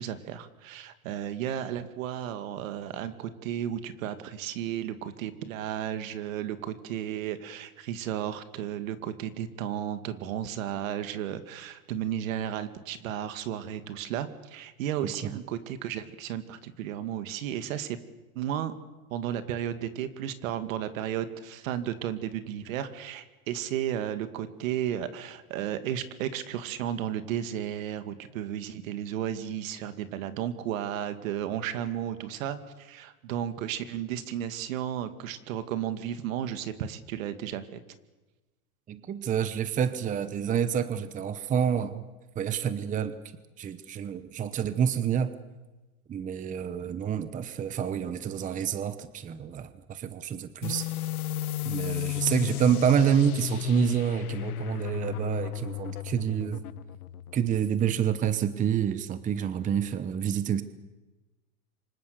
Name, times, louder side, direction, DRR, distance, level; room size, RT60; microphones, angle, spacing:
voice 1, 0.0-18.0 18.3-18.7 19.1-37.8, right 10 dB, 65° right, 10 dB, 2.4 m, -33 dB
voice 2, 38.9-42.1 42.3-43.2 43.6-45.3 46.1-50.9 51.6-56.6 57.3-60.6, right 8 dB, 20° right, 12 dB, 1.0 m, -28 dB
sound 1, 50.6-57.9, left 13 dB, 85° left, 1.2 m, -34 dB
28.0 x 25.5 x 7.0 m, 1.2 s
supercardioid pair, 140°, 42 cm